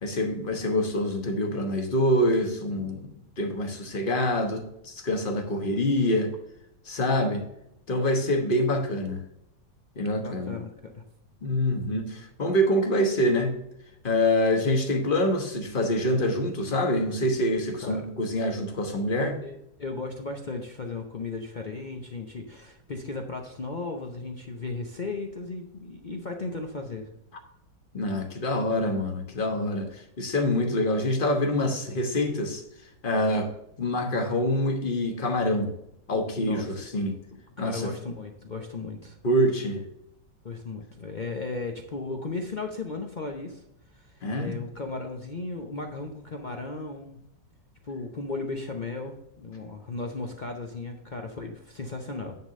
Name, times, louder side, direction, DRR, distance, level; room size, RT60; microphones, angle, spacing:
voice 1, 0.0-3.1 3.4-6.3 6.9-7.4 7.9-9.2 10.0-10.5 11.4-13.6 14.0-19.3 27.9-32.6 33.0-33.5 33.8-35.7 36.1-37.1 37.6-37.9 39.2-39.8 44.2-44.6, left 1 dB, 35° left, 4 dB, 1.1 m, -26 dB
voice 2, 10.1-11.0 17.8-18.1 19.2-27.1 36.4-36.8 37.6-39.2 40.4-43.6 43.9-47.2 47.8-52.4, left 3 dB, 60° left, 3 dB, 0.4 m, -36 dB
9.8 x 3.8 x 6.4 m, 0.81 s
omnidirectional pair, 1.9 m